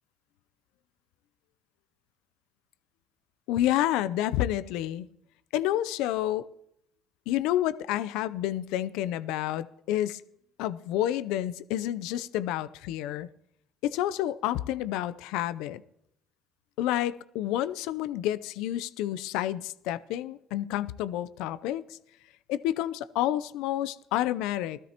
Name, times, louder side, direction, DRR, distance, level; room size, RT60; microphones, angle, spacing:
voice 1, 3.5-5.1 5.5-6.5 7.3-10.2 10.6-13.3 13.8-15.8 16.8-22.0 22.5-24.8, left 13 dB, 80° left, 0.6 m, -29 dB
17.5 x 13.5 x 3.0 m
supercardioid pair, 75°, 0 cm